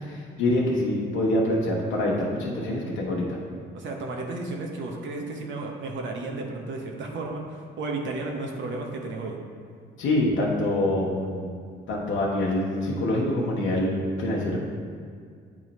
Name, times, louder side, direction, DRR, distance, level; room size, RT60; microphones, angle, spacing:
voice 1, 0.0-3.4 10.0-11.5 11.9-14.6, left 1 dB, 80° left, -3 dB, 0.9 m, -25 dB
voice 2, 3.7-9.4, right 2 dB, 70° right, 1 dB, 0.9 m, -33 dB
8.4 x 3.1 x 4.1 m, 2.1 s
cardioid pair, 90°, 20 cm